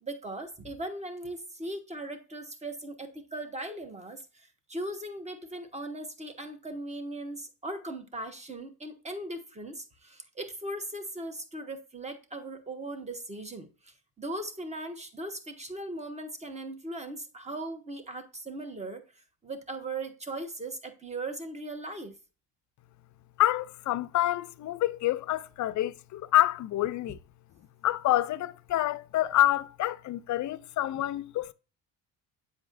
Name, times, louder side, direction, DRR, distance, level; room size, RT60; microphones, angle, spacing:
voice 1, 0.0-19.0 19.4-22.1, right 2 dB, 15° right, 1.3 m, -39 dB
voice 2, 23.4-27.2 27.8-31.5, left 14 dB, 50° left, 0.5 m, -27 dB
7.7 x 5.7 x 2.5 m
cardioid pair, 90°, 39 cm